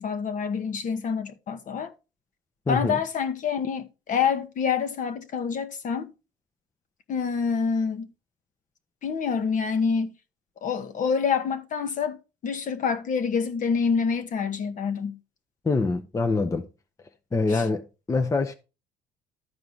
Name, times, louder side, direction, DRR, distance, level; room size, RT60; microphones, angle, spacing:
voice 1, 0.0-1.9 2.7-6.1 7.1-8.1 9.0-10.1 10.6-12.2 12.4-15.2 17.5-17.7, left 6 dB, 50° left, 1.1 m, -27 dB
voice 2, 2.7-3.0 15.6-16.7 17.3-18.5, left 3 dB, 20° left, 0.7 m, -25 dB
12.5 x 4.6 x 3.9 m
cardioid pair, 110°, 17 cm